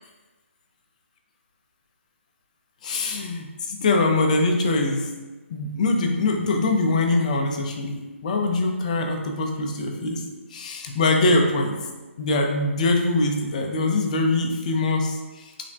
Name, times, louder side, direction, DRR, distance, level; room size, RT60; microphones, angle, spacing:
voice 1, 2.8-5.1 5.5-10.2 10.5-11.8 12.2-15.7, left 2 dB, 35° left, 3 dB, 0.3 m, -23 dB
3.2 x 2.0 x 2.5 m, 1.2 s
hypercardioid pair, 155°, 7 cm